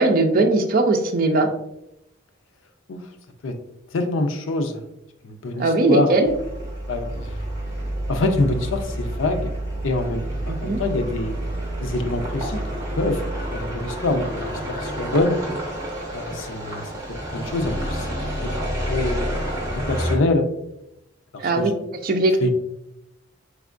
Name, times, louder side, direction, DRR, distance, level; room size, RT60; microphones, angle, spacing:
voice 1, 0.0-1.5 5.6-6.3 10.5-10.8 21.4-21.7 22.0-22.4, right 2 dB, 50° right, 5 dB, 0.5 m, -19 dB
voice 2, 3.9-4.8 5.2-6.1 6.9-7.3 8.1-9.5 9.8-11.3 11.8-12.6 13.0-13.2 13.5-15.4 16.1-16.9 17.3-18.2 18.4-18.5 18.9-19.5 19.7-20.5 21.3-21.7 22.4-22.5, left 2 dB, 90° left, 7 dB, 0.5 m, -25 dB
sound 1, 6.3-20.2, right 1 dB, 20° right, 1.1 m, -29 dB
4.3 x 3.5 x 2.5 m, 0.85 s
head